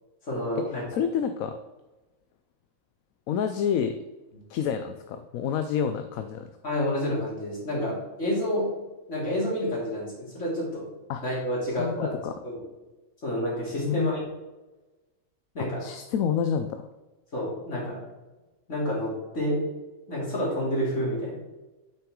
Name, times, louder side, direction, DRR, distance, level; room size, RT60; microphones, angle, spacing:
voice 1, 0.2-0.8 6.6-8.7 9.1-10.9 11.2-12.2 12.4-12.6 13.2-14.2 15.5-15.8 17.3-18.0 18.7-19.6 20.1-21.4, equal, 55° left, -5 dB, 3.3 m, -29 dB
voice 2, 0.9-1.6 3.3-4.0 4.5-6.5 11.1-11.2 11.7-12.3 13.9-14.1 15.8-16.9, left 7 dB, 80° left, 8 dB, 1.0 m, -28 dB
8.7 x 5.8 x 3.7 m, 1.1 s
omnidirectional pair, 1.5 m